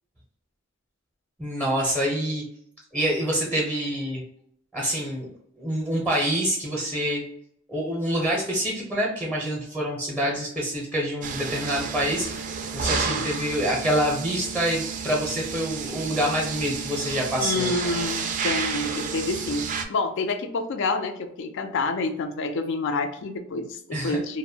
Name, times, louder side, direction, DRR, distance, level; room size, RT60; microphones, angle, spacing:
voice 1, 1.4-2.4 2.9-4.2 4.7-5.3 5.6-7.2 7.7-12.4 12.7-17.7 23.9-24.2, equal, 5° right, -2 dB, 0.6 m, -26 dB
sound 1, 11.2-19.8, right 6 dB, 40° right, 0.3 m, -31 dB
voice 2, 12.9-13.3 17.4-24.4, left 3 dB, 65° left, 8 dB, 0.4 m, -28 dB
2.5 x 2.1 x 2.7 m, 0.71 s
head